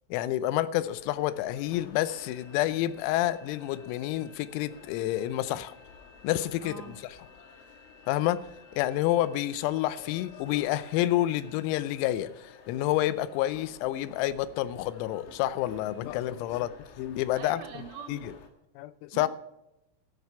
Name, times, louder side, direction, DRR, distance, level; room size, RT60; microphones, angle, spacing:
voice 1, 0.1-5.7 6.2-6.8 8.1-8.5 8.7-17.6 18.1-18.2 18.8-19.3, left 14 dB, 90° left, 3.4 m, -29 dB
sound 1, 0.8-18.5, left 6 dB, 70° left, 3.7 m, -53 dB
sound 2, 1.9-11.6, left 2 dB, 55° left, 5.0 m, -57 dB
voice 2, 6.6-7.0 17.4-18.3 19.1-19.3, right 7 dB, 75° right, 2.7 m, -43 dB
13.5 x 9.4 x 5.6 m
omnidirectional pair, 6.0 m